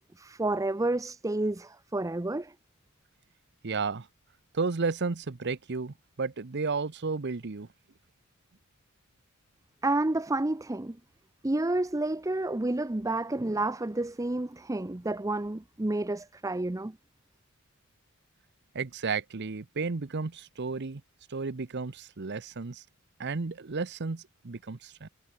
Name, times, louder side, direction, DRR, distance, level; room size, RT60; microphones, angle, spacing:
voice 1, 0.2-2.5 9.8-11.0 11.4-17.0, right 2 dB, 15° right, 0.6 m, -30 dB
voice 2, 3.6-4.1 4.5-7.7 18.7-21.0 21.3-22.8 23.2-25.1, right 4 dB, 55° right, 0.8 m, -33 dB
head